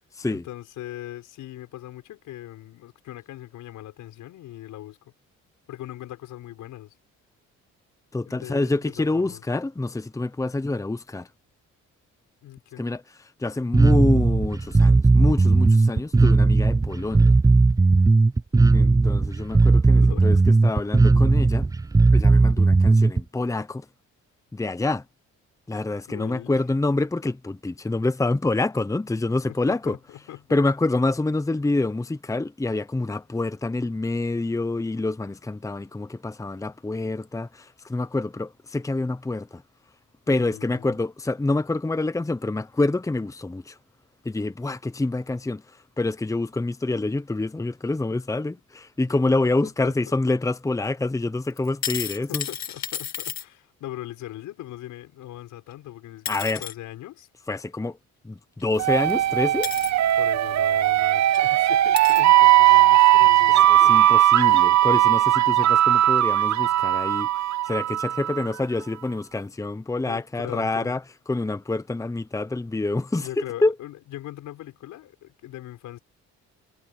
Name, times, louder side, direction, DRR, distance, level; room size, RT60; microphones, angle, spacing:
voice 1, 0.3-5.1 5.7-6.9 8.2-9.4 12.4-12.9 20.0-20.4 26.1-26.6 29.5-30.6 40.3-41.0 49.8-50.2 52.3-57.3 60.2-64.1 64.4-64.7 70.0-71.0 73.2-76.0, left 14 dB, 85° left, 6.8 m, -40 dB
voice 2, 8.1-11.3 12.8-17.4 18.7-21.7 22.1-23.9 24.5-25.0 25.7-30.0 30.5-39.6 40.3-43.8 44.2-52.4 56.3-56.6 57.5-58.0 58.2-59.7 63.7-67.3 67.6-71.0 71.3-73.7, left 2 dB, 10° left, 0.9 m, -27 dB
Bass guitar, 13.7-23.2, right 3 dB, 10° right, 0.5 m, -17 dB
sound 1, 51.6-53.4 55.7-55.8 56.3-56.7 58.6-58.7 59.6-59.9 60.9-61.0 61.3-61.4 62.0-62.3 63.1-63.2, left 9 dB, 65° left, 2.5 m, -32 dB
sound 2, 58.8-68.5, right 13 dB, 65° right, 0.9 m, -18 dB
cardioid pair, 90°, 30 cm